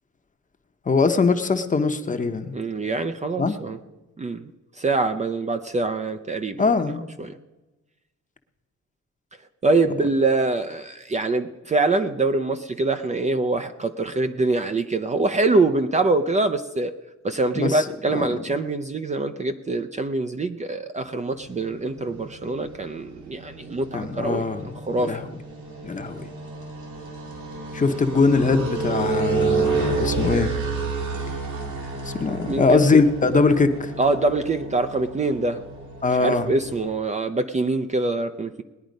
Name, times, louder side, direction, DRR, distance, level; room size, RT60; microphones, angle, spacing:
voice 1, 0.9-2.5 3.4-3.6 6.6-7.0 17.6-18.4 23.9-24.7 25.0-25.3 25.8-26.3 27.7-30.5 32.0-33.9 36.0-36.5, left 4 dB, 25° left, 7 dB, 0.9 m, -21 dB
voice 2, 2.5-3.8 4.2-4.5 4.8-6.7 7.2-7.4 9.6-16.9 17.2-24.4 24.8-25.2 27.9-28.0 32.5-33.0 34.0-35.6 36.2-38.6, right 3 dB, 25° right, 8 dB, 0.5 m, -24 dB
sound 1, 21.4-36.9, right 4 dB, 80° right, 3.5 m, -30 dB
19.5 x 10.0 x 5.2 m, 1.1 s
wide cardioid pair, 150°, 29 cm